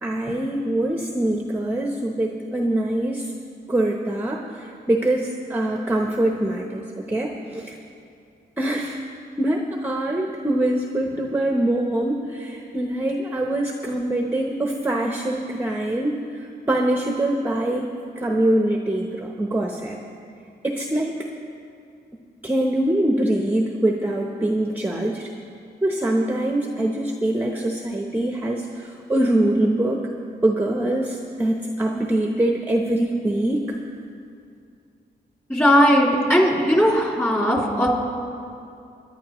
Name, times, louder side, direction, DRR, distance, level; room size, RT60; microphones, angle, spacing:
voice 1, 0.0-3.3 3.7-6.8 7.1-7.7 8.6-9.0 9.4-17.8 18.2-20.0 20.6-21.2 22.4-25.3 25.8-30.0 30.4-33.8, right 1 dB, 10° right, 1 dB, 0.8 m, -23 dB
voice 2, 35.5-37.9, equal, 15° left, -2 dB, 2.7 m, -18 dB
24.0 x 10.5 x 3.0 m, 2.5 s
cardioid pair, 95°, 17 cm